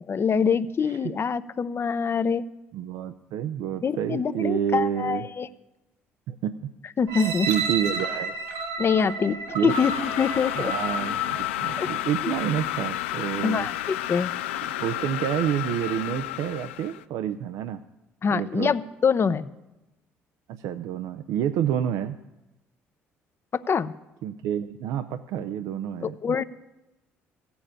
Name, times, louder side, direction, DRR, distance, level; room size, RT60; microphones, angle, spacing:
voice 1, 0.1-2.4 3.8-5.5 7.0-7.5 8.8-10.7 11.8-11.9 12.2-12.3 13.4-14.3 18.2-19.5 23.5-23.9 26.0-26.4, left 6 dB, 40° left, 14 dB, 0.7 m, -25 dB
voice 2, 2.7-5.2 6.3-6.6 7.2-8.3 9.5-9.7 10.6-13.7 14.8-17.8 18.3-18.7 20.5-22.2 24.2-26.2, right 10 dB, 65° right, 10 dB, 0.5 m, -28 dB
sound 1, 7.1-12.0 12.6-12.7, right 4 dB, 85° right, 2.5 m, -32 dB
sound 2, 9.7-17.0, left 14 dB, 85° left, 0.4 m, -31 dB
15.5 x 7.0 x 8.8 m, 1.0 s
hypercardioid pair, 55°, 6 cm